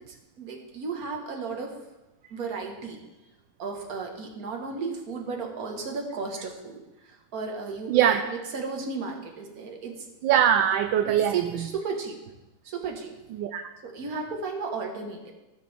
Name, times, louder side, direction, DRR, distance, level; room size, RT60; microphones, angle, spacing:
voice 1, 0.1-1.7 2.3-3.0 3.6-10.1 11.0-12.2 12.6-13.1 13.8-15.3, right 4 dB, 45° right, 2 dB, 1.7 m, -34 dB
voice 2, 7.9-8.2 10.2-11.7 13.3-13.6, right 10 dB, 75° right, 7 dB, 1.2 m, -22 dB
16.5 x 6.7 x 3.4 m, 1.0 s
omnidirectional pair, 2.4 m